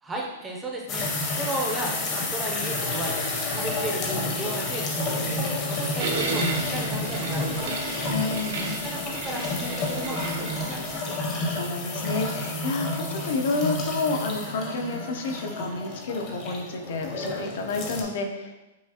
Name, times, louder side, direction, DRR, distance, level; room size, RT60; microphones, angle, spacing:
voice 1, 0.0-3.2 3.5-5.4 5.7-7.8 8.6-11.2, right 1 dB, 10° right, -1 dB, 0.5 m, -34 dB
sound 1, 0.9-18.0, left 2 dB, 30° left, 0.7 m, -30 dB
sound 2, 6.0-11.0, right 3 dB, 65° right, 0.7 m, -33 dB
voice 2, 8.1-8.8 11.5-18.5, left 3 dB, 65° left, 4 dB, 0.6 m, -30 dB
5.6 x 2.4 x 2.8 m, 1.0 s
hypercardioid pair, 160°, 0 cm